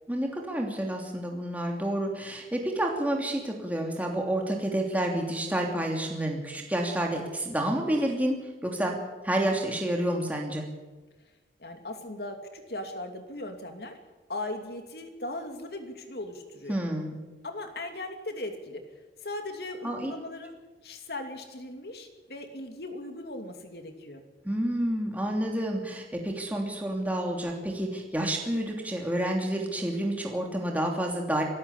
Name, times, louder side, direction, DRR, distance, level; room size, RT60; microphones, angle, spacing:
voice 1, 0.1-8.3 8.6-9.0 9.2-10.7 16.7-17.2 19.8-20.1 24.4-31.4, right 1 dB, 10° right, 1 dB, 2.9 m, -29 dB
voice 2, 11.6-14.0 14.3-16.8 17.4-18.8 19.2-20.6 20.8-24.2, left 2 dB, 65° left, 5 dB, 2.9 m, -38 dB
25.0 x 13.0 x 8.4 m, 1.2 s
head